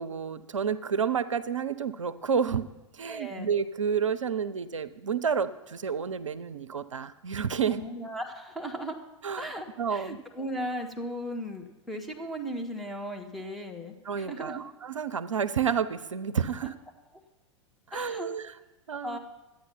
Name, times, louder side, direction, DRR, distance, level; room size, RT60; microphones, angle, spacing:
voice 1, 0.0-2.6 2.9-7.8 9.2-9.5 9.8-10.2 14.0-16.7 17.9-18.5 18.9-19.2, right 7 dB, 80° right, 14 dB, 0.5 m, -30 dB
voice 2, 3.1-3.5 7.7-9.0 9.4-14.6 16.6-16.7 17.9-18.3 19.0-19.2, equal, ahead, 1 dB, 1.4 m, -37 dB
11.5 x 8.7 x 5.6 m, 1.1 s
figure-of-eight pair, 90°, 16 cm